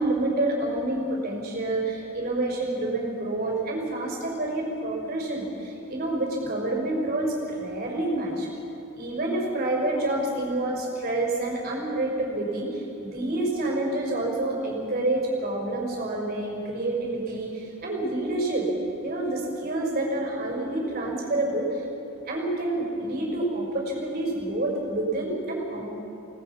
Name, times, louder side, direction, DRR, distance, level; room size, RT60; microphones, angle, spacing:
voice 1, 0.0-8.5 8.9-18.7 19.0-21.8 22.3-25.9, right 2 dB, 45° right, -2 dB, 5.5 m, -28 dB
29.0 x 19.0 x 5.8 m, 2.8 s
head